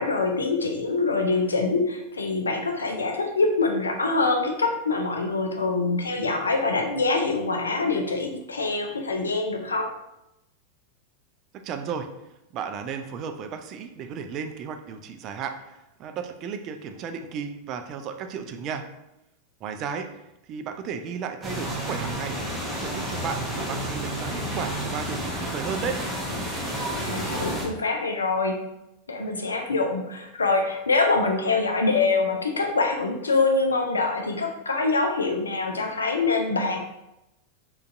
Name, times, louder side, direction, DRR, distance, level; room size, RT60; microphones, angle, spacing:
voice 1, 0.0-9.9 27.0-28.5 29.1-36.8, left 3 dB, 75° left, 4 dB, 0.4 m, -25 dB
voice 2, 11.5-12.1 12.5-18.9 19.6-20.1 20.5-26.0, right 6 dB, 35° right, 6 dB, 0.3 m, -34 dB
sound 1, 21.4-27.7, equal, ahead, 0.7 m, -30 dB
3.8 x 2.3 x 2.4 m, 0.89 s
figure-of-eight pair, 90°, 0 cm